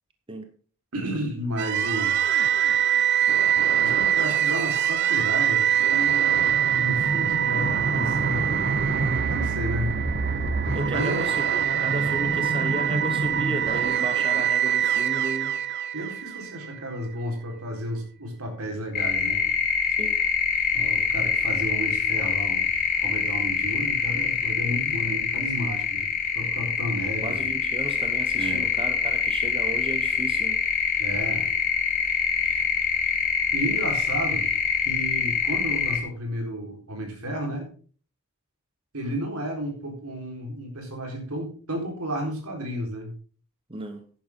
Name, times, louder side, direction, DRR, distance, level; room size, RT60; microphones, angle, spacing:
voice 1, 0.9-2.1 3.8-8.7 9.3-9.9 10.4-10.5 10.8-11.3 13.8-14.0 15.9-19.5 20.7-22.7 23.0-27.5 28.3-28.7 31.0-31.5 33.5-34.5 34.8-37.7 38.9-43.1, equal, 80° right, 4.1 m, -32 dB
sound 1, 1.6-16.7, right 8 dB, 50° right, 0.8 m, -23 dB
voice 2, 10.7-15.6 19.9-20.2 27.2-30.6 43.7-44.0, right 1 dB, 25° right, 0.9 m, -34 dB
sound 2, 18.9-36.0, left 6 dB, 40° left, 1.8 m, -25 dB
11.0 x 10.5 x 3.7 m
head